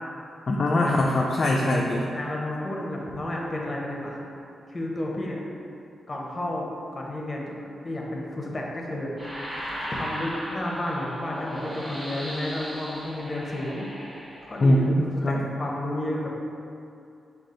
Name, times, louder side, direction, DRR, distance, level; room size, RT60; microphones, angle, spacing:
voice 1, 0.5-2.1 14.6-15.4, left 1 dB, 50° left, -2 dB, 0.3 m, -22 dB
voice 2, 2.1-4.2 4.7-5.4 6.1-7.4 7.8-9.4 9.9-13.9 14.4-16.3, left 1 dB, 35° left, -2 dB, 0.8 m, -32 dB
sound 1, 9.2-14.8, equal, 25° right, 1.0 m, -37 dB
4.7 x 2.4 x 3.8 m, 2.6 s
cardioid pair, 55°, 0 cm